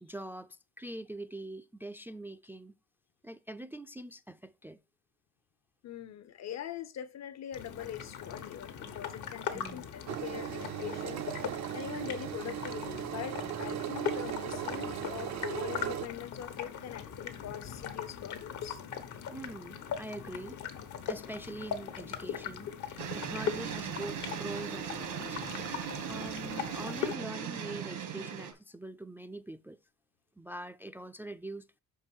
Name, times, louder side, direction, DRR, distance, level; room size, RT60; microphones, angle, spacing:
voice 1, 0.0-2.7 3.2-4.8 9.5-9.9 13.4-13.8 19.3-20.6 21.1-25.4 26.0-29.8 30.4-31.8, right 1 dB, 5° right, 0.3 m, -43 dB
voice 2, 5.8-11.2 11.7-18.8, left 10 dB, 60° left, 0.6 m, -42 dB
sound 1, 7.5-27.1, left 8 dB, 75° left, 1.1 m, -40 dB
Engine, 10.1-16.1, right 12 dB, 65° right, 0.5 m, -37 dB
sound 2, 23.0-28.5, right 8 dB, 85° right, 1.7 m, -38 dB
5.2 x 4.5 x 6.1 m
cardioid pair, 90°, 30 cm